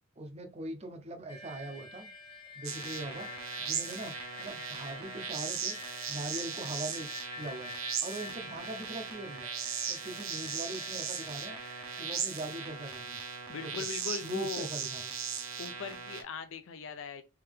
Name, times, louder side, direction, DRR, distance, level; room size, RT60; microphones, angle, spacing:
voice 1, 0.2-2.1 2.6-3.3 3.6-5.8 6.1-7.1 7.4-7.7 8.0-9.5 9.9-11.6 12.0-13.2 13.6-13.9 14.2-15.1, right 1 dB, 30° right, 0.6 m, -41 dB
sound 1, 1.3-13.7, left 3 dB, 25° left, 0.7 m, -48 dB
sound 2, 2.6-16.2, right 7 dB, 75° right, 0.7 m, -38 dB
voice 2, 13.5-14.7 15.6-17.2, left 5 dB, 65° left, 0.4 m, -39 dB
3.5 x 2.8 x 3.4 m
head